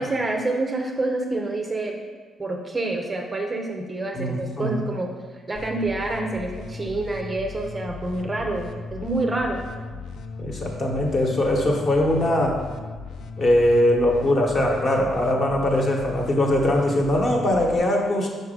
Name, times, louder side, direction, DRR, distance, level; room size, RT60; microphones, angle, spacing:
voice 1, 0.0-2.0 2.4-9.6, right 2 dB, 15° right, 2 dB, 0.5 m, -27 dB
voice 2, 4.1-4.8 10.4-12.6 13.4-18.3, left 1 dB, 35° left, 0 dB, 1.0 m, -21 dB
sound 1, 5.5-17.8, left 4 dB, 65° left, 0.4 m, -37 dB
5.4 x 4.6 x 5.1 m, 1.5 s
cardioid pair, 165°, 0 cm